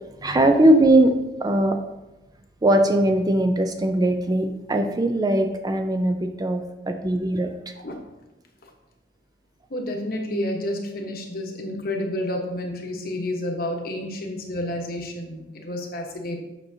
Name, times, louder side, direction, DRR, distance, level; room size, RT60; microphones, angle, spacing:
voice 1, 0.2-1.1 1.4-1.8 2.6-7.5, right 1 dB, 20° right, 6 dB, 0.4 m, -20 dB
voice 2, 9.7-16.4, left 1 dB, 55° left, 2 dB, 1.1 m, -30 dB
8.1 x 5.6 x 2.7 m, 0.98 s
head